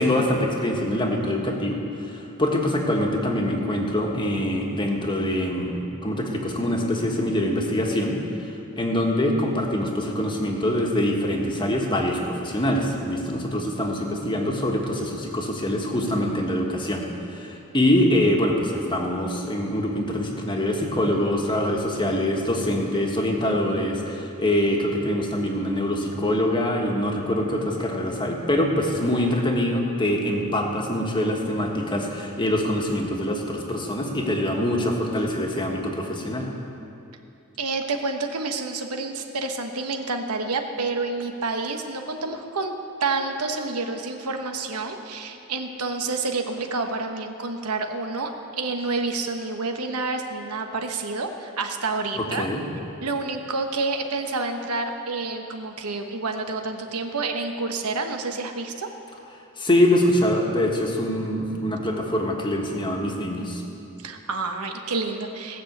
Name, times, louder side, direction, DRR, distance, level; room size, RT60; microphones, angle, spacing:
voice 1, 0.0-8.2 8.8-17.0 17.3-36.5 52.1-52.6 59.6-63.6, left 1 dB, 20° left, 0 dB, 1.5 m, -24 dB
voice 2, 37.6-42.7 43.0-48.3 48.6-52.5 53.0-58.9 64.0-65.6, right 3 dB, 90° right, 4 dB, 1.2 m, -28 dB
17.5 x 6.3 x 8.0 m, 2.7 s
head